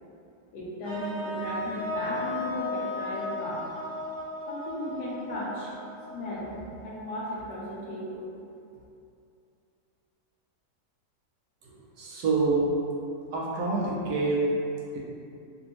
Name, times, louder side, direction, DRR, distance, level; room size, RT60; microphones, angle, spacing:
voice 1, 0.5-3.6 4.5-5.7 6.1-8.2, left 1 dB, 75° left, -6 dB, 1.3 m, -35 dB
sound 1, 0.8-6.9, left 2 dB, 50° right, 0.5 m, -36 dB
voice 2, 11.6-12.8 13.3-14.5 14.9-15.0, right 3 dB, 70° right, -4 dB, 1.1 m, -27 dB
3.4 x 2.6 x 2.8 m, 2.6 s
omnidirectional pair, 1.9 m